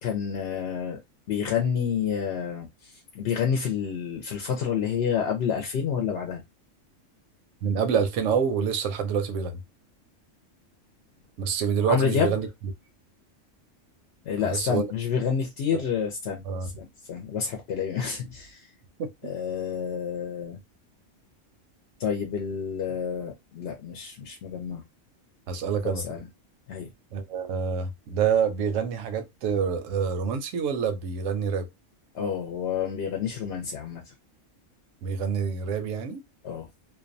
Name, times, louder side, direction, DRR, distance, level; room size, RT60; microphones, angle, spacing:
voice 1, 0.0-1.0 1.3-6.4 11.8-12.4 14.2-18.7 19.2-20.6 22.0-24.8 25.8-26.3 26.7-26.9 32.1-34.1 36.4-36.7, left 7 dB, 65° left, 0.8 m, -29 dB
voice 2, 7.6-9.6 11.4-12.5 14.4-14.9 15.7-15.8 16.5-16.7 19.0-19.3 25.5-26.0 27.1-31.6 35.0-36.2, right 6 dB, 80° right, 1.0 m, -27 dB
2.5 x 2.1 x 2.5 m
omnidirectional pair, 1.3 m